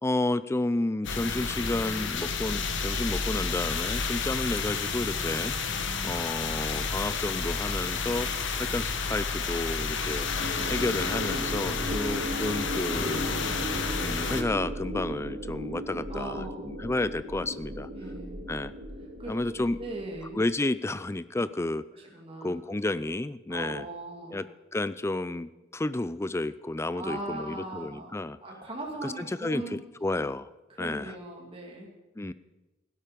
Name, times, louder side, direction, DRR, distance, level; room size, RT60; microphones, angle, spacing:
voice 1, 0.0-5.8 6.0-8.3 8.6-10.3 10.7-13.2 13.9-17.9 18.5-18.7 19.3-19.8 20.3-21.8 22.4-23.9 24.3-24.4 24.7-28.4 29.0-30.5 30.8-31.1 32.2-32.3, left 2 dB, 15° left, 16 dB, 0.4 m, -31 dB
sound 1, 1.0-14.4, left 5 dB, 70° left, 1.3 m, -31 dB
voice 2, 5.7-6.2 16.1-16.7 17.9-18.4 19.2-20.4 21.9-22.6 23.5-24.4 26.9-29.8 30.7-31.9, right 2 dB, 30° right, -1 dB, 2.4 m, -39 dB
sound 2, 10.0-20.5, equal, 65° right, 2.5 m, -37 dB
Acoustic guitar, 12.9-16.6, equal, 30° left, 3.3 m, -44 dB
16.5 x 12.5 x 5.2 m, 1.1 s
head